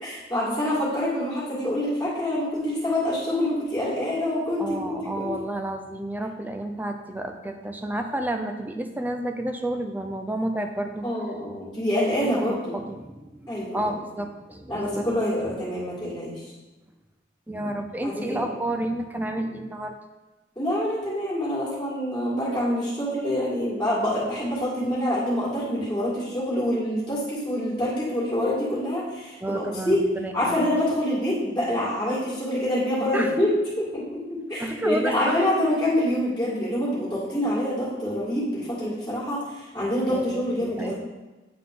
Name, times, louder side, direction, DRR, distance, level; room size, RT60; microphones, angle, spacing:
voice 1, 0.0-5.3 11.0-12.8 13.5-13.9 14.7-16.3 18.0-18.5 20.6-30.0 30.3-33.5 33.8-40.9, left 1 dB, 15° left, -12 dB, 2.0 m, -26 dB
voice 2, 4.6-11.1 12.1-15.1 17.5-19.9 29.4-30.6 33.1-33.3 34.6-35.4 40.1-40.9, right 1 dB, 10° right, 5 dB, 0.4 m, -31 dB
9.3 x 4.0 x 3.7 m, 1.1 s
head